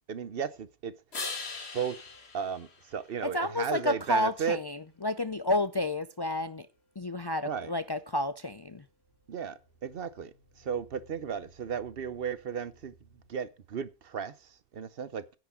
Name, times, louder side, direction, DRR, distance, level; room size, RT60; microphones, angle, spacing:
voice 1, 0.1-1.0 1.7-2.0 2.3-4.6 7.4-7.7 9.3-12.9 13.3-15.3, right 7 dB, 65° right, 1.0 m, -35 dB
sound 1, 1.1-3.7 9.4-13.4, left 4 dB, 80° left, 1.9 m, -44 dB
voice 2, 3.2-6.7 7.0-8.8, left 1 dB, 35° left, 0.4 m, -30 dB
10.5 x 6.1 x 7.0 m
omnidirectional pair, 1.1 m